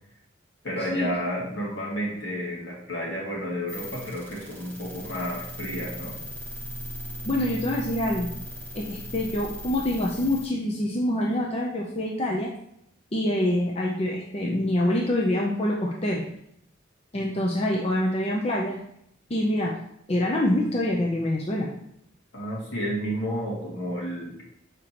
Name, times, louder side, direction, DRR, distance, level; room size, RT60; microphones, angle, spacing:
voice 1, 0.6-6.2 22.3-24.4, equal, 70° left, -4 dB, 2.0 m, -31 dB
sound 1, 3.7-10.4, equal, 10° left, 1.2 m, -38 dB
voice 2, 7.2-8.3 8.7-12.5 13.1-16.2 17.1-18.8 19.3-19.7 20.1-21.7, left 1 dB, 30° left, -2 dB, 0.6 m, -25 dB
6.7 x 5.0 x 2.9 m, 0.75 s
head